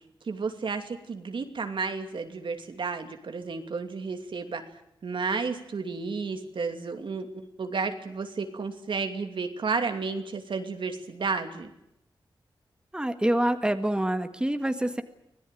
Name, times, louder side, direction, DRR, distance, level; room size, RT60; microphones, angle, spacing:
voice 1, 0.3-4.6 5.0-11.7, right 4 dB, 75° right, 6 dB, 2.7 m, -32 dB
voice 2, 12.9-15.0, right 1 dB, 10° right, 8 dB, 1.7 m, -26 dB
25.5 x 17.5 x 9.2 m, 0.81 s
wide cardioid pair, 115°, 8 cm